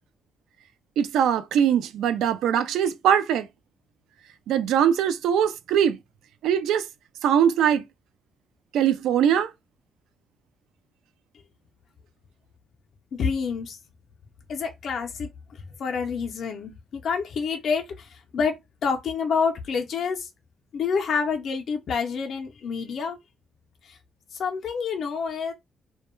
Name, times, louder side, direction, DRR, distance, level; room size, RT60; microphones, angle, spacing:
voice 1, 1.0-3.5 4.5-6.0 6.4-6.8 7.2-7.8 8.7-9.5, right 9 dB, 85° right, 0.3 m, -21 dB
voice 2, 13.1-13.8 14.5-18.5 18.8-20.3 20.7-23.2 23.8-24.0 24.3-25.5, left 5 dB, 60° left, 0.4 m, -28 dB
2.2 x 2.1 x 3.0 m
cardioid pair, 90°, 0 cm